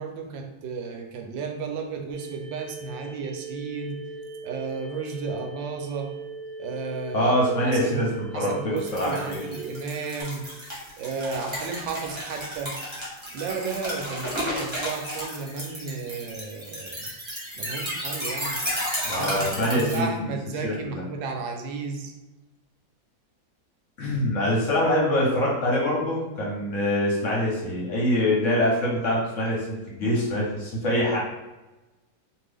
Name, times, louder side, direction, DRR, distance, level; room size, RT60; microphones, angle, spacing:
voice 1, 0.0-4.0 4.4-6.2 6.6-7.3 7.6-8.1 8.3-10.6 11.0-12.8 13.3-17.1 17.6-18.6 19.1-22.1, right 4 dB, 85° right, 3 dB, 1.3 m, -33 dB
sound 1, 2.1-10.2, right 4 dB, 60° right, 0.6 m, -39 dB
voice 2, 7.1-8.1 8.3-9.4 19.0-20.3 20.6-21.0 24.0-31.2, left 1 dB, 55° left, -4 dB, 0.9 m, -24 dB
sound 2, 8.8-20.0, equal, 20° right, 0.8 m, -33 dB
2.8 x 2.6 x 3.3 m, 1.1 s
omnidirectional pair, 2.0 m